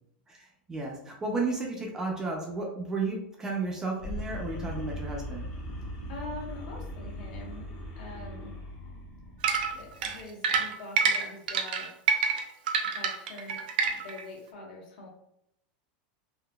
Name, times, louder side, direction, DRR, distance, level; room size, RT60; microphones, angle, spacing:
voice 1, 0.3-5.5, right 3 dB, 10° right, -1 dB, 0.3 m, -33 dB
sound 1, 4.0-10.3, equal, 25° left, 0.6 m, -39 dB
voice 2, 6.1-8.6 9.7-11.9 12.8-15.1, left 2 dB, 65° left, -3 dB, 1.3 m, -44 dB
sound 2, 9.4-14.2, right 5 dB, 70° right, 0.5 m, -27 dB
3.7 x 2.7 x 2.2 m, 0.77 s
supercardioid pair, 180°, 5 cm